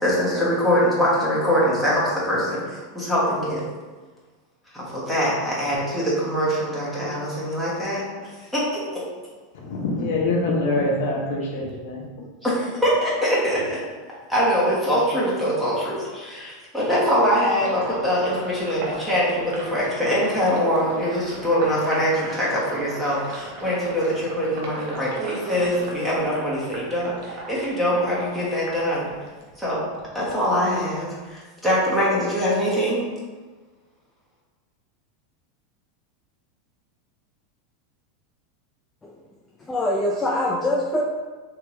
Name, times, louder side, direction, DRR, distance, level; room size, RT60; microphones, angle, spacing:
voice 1, 0.0-3.6 4.7-8.0 8.5-9.0 12.4-13.8 14.3-29.1 29.6-29.8 30.1-33.0, equal, 5° right, -8 dB, 1.1 m, -23 dB
voice 2, 9.5-12.2, left 2 dB, 75° left, -1 dB, 0.8 m, -25 dB
Sink (filling or washing), 17.3-29.5 29.9-31.3, right 2 dB, 65° right, 0.8 m, -38 dB
voice 3, 39.6-41.1, left 1 dB, 15° left, -2 dB, 0.3 m, -23 dB
3.3 x 2.9 x 3.0 m, 1.3 s
supercardioid pair, 135°, 0 cm